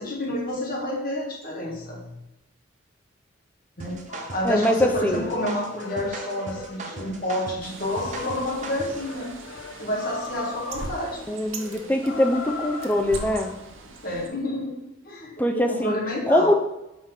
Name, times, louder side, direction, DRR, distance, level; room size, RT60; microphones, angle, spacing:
voice 1, 0.0-2.2 3.8-4.0 4.3-9.3 9.8-11.3 13.8-14.7 15.0-16.5, left 1 dB, 45° left, -2 dB, 1.5 m, -29 dB
sound 1, 3.8-9.1, right 3 dB, 40° right, 0.6 m, -39 dB
sound 2, 4.1-13.5, left 3 dB, 75° left, 0.6 m, -38 dB
voice 2, 4.4-5.3 11.3-13.5 15.4-16.0 16.3-16.5, left 1 dB, 10° left, 3 dB, 0.5 m, -22 dB
Bird, 7.6-14.3, right 3 dB, 85° right, 0.8 m, -41 dB
4.9 x 3.6 x 5.6 m, 0.91 s
head